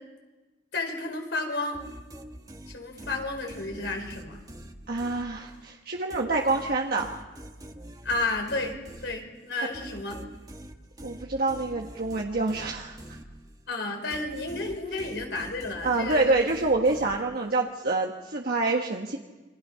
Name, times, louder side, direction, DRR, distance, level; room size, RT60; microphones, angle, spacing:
voice 1, 0.7-1.8 2.7-4.4 8.0-8.7 9.0-10.2 13.7-16.5, left 2 dB, 70° left, 3 dB, 5.1 m, -32 dB
sound 1, 1.7-5.7 6.1-13.7 14.1-17.6, right 1 dB, 20° right, 1.4 m, -45 dB
voice 2, 4.9-7.1 11.0-13.0 15.8-19.2, right 3 dB, 55° right, 0 dB, 1.5 m, -26 dB
28.5 x 24.5 x 5.7 m, 1.2 s
head